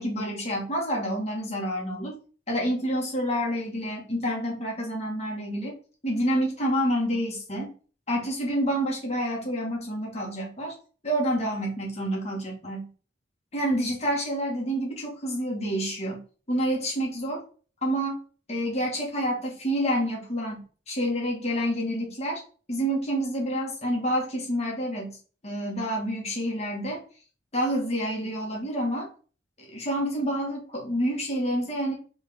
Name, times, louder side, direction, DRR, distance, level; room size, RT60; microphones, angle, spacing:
voice 1, 0.0-2.1 2.5-5.8 6.0-7.7 8.1-10.8 11.0-12.9 13.5-16.2 16.5-17.4 17.8-18.2 18.5-22.4 22.7-25.2 25.4-27.0 27.5-29.1 29.7-31.9, equal, 35° left, -1 dB, 2.2 m, -28 dB
4.9 x 3.8 x 5.3 m, 0.38 s
head